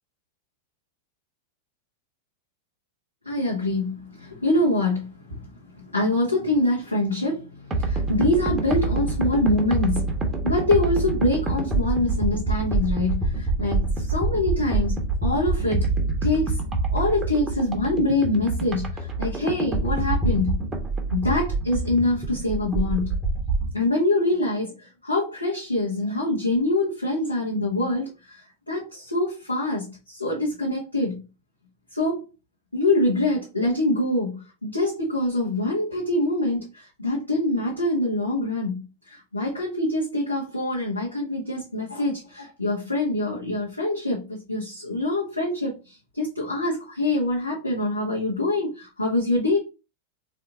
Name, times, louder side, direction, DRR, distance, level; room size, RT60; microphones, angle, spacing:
voice 1, 3.2-10.1 10.4-15.9 16.2-16.6 16.9-20.6 21.1-23.2 23.7-31.2 31.9-32.2 32.7-49.6, left 2 dB, 85° left, 1.2 m, -25 dB
sound 1, 7.7-23.7, right 2 dB, 20° right, 1.2 m, -26 dB
3.9 x 3.3 x 3.8 m
figure-of-eight pair, 90°, 0 cm